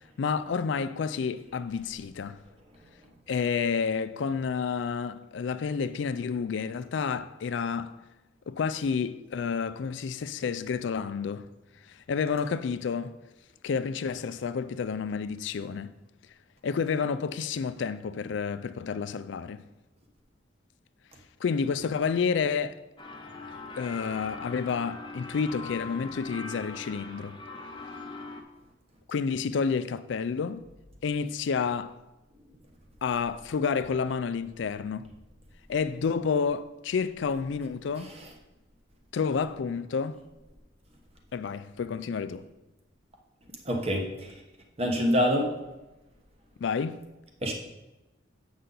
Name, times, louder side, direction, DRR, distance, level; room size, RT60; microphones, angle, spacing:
voice 1, 0.2-2.4 3.3-8.0 8.5-11.5 11.9-13.2 13.6-15.9 16.6-19.6 21.4-22.8 23.8-27.4 29.1-30.6 31.0-32.0 33.0-35.1 35.7-38.1 39.1-40.2 41.3-42.4 46.6-47.0, left 5 dB, 65° left, 0.4 m, -30 dB
sound 1, 23.0-28.4, left 3 dB, 25° left, 0.7 m, -41 dB
voice 2, 43.6-44.3 44.8-45.5 47.4-47.5, equal, 30° right, 1.1 m, -25 dB
8.0 x 5.6 x 3.9 m
head